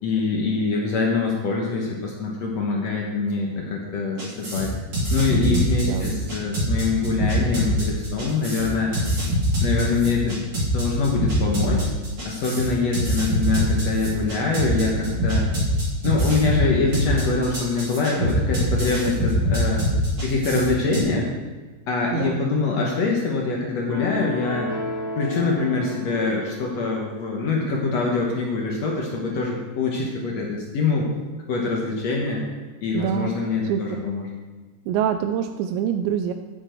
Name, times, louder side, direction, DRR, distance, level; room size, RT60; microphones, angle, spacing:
voice 1, 0.0-4.7 5.1-9.0 9.6-10.5 10.7-11.9 12.2-15.5 16.0-19.8 20.2-21.3 21.9-24.7 25.2-31.1 31.5-32.4 32.8-34.3, left 4 dB, 90° left, -2 dB, 1.4 m, -24 dB
sound 1, 4.2-21.0, equal, 25° right, 3.1 m, -24 dB
voice 2, 5.5-6.2 22.1-22.5 32.9-34.0 34.9-36.3, right 9 dB, 90° right, 6 dB, 2.8 m, -26 dB
sound 2, 23.9-27.1, left 2 dB, 35° left, 4.2 m, -32 dB
11.5 x 8.8 x 4.5 m, 1.3 s
omnidirectional pair, 5.0 m